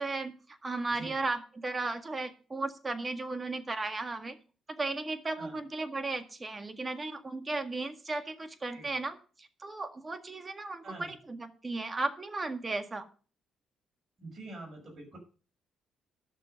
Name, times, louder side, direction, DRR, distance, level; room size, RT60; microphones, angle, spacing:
voice 1, 0.0-4.4 4.7-13.1, right 3 dB, 25° right, 8 dB, 1.8 m, -35 dB
voice 2, 10.8-11.1 14.2-15.2, right 2 dB, 45° right, 2 dB, 6.0 m, -45 dB
11.5 x 6.9 x 6.7 m, 0.38 s
cardioid pair, 90°, 0 cm